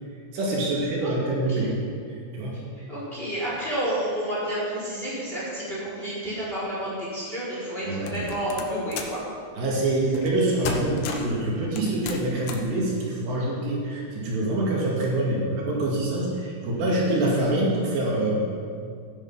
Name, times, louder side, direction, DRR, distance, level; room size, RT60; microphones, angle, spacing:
voice 1, 0.3-1.8 2.3-2.6 7.9-8.2 9.6-18.5, right 2 dB, 70° right, -4 dB, 4.4 m, -25 dB
voice 2, 2.9-9.2, right 1 dB, 15° left, -7 dB, 4.0 m, -30 dB
sound 1, 8.1-9.2 10.1-10.4 10.6-11.4 11.8-12.7, left 5 dB, 80° left, 1.7 m, -33 dB
15.0 x 10.5 x 5.7 m, 2.3 s
omnidirectional pair, 5.3 m